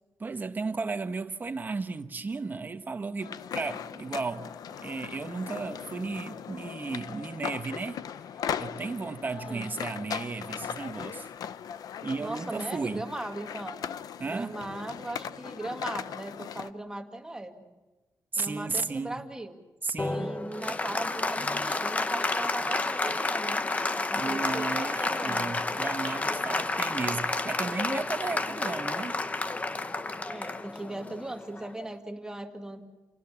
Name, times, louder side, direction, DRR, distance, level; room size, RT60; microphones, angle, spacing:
voice 1, 0.2-4.5 4.8-8.0 8.6-11.3 12.0-13.1 14.2-14.6 18.3-19.2 19.8-20.3 24.2-29.2, right 4 dB, 30° right, 1.3 m, -34 dB
sound 1, 3.2-16.7, left 8 dB, 90° left, 0.7 m, -39 dB
voice 2, 12.2-13.9 14.2-17.6 18.3-19.5 20.1-23.6 24.1-25.5 30.3-32.8, right 1 dB, 10° right, 2.1 m, -38 dB
Applause, 20.0-31.9, left 3 dB, 25° left, 0.8 m, -30 dB
29.0 x 18.5 x 7.3 m
wide cardioid pair, 150°, 6 cm